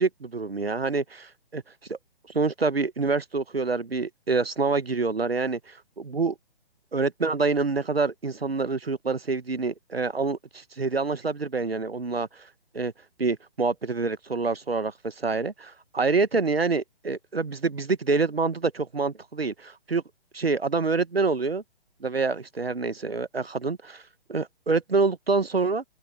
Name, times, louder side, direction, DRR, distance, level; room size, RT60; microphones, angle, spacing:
voice 1, 0.0-1.6 1.9-2.0 2.3-6.3 6.9-12.5 12.7-12.9 13.2-20.0 20.3-21.6 22.0-24.0 24.3-25.8, right 4 dB, 80° right, 1.3 m, -26 dB
open air
figure-of-eight pair, 135°, 30 cm